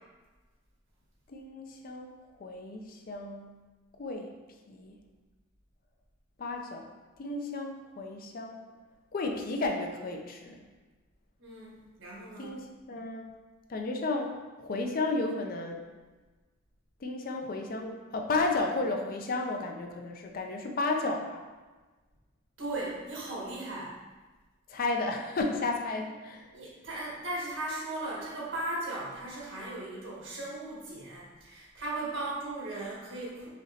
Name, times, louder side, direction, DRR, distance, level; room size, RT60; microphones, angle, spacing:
voice 1, 1.3-2.1 2.4-3.5 4.0-4.3 4.7-5.0 6.4-6.9 7.2-8.6 9.1-10.6 12.4-13.3 13.7-15.8 17.0-21.4 24.7-26.5, left 3 dB, 45° left, 4 dB, 0.4 m, -33 dB
voice 2, 11.4-12.6 22.6-24.0 26.5-33.5, right 2 dB, 75° right, -5 dB, 1.4 m, -37 dB
4.9 x 2.9 x 2.7 m, 1.3 s
head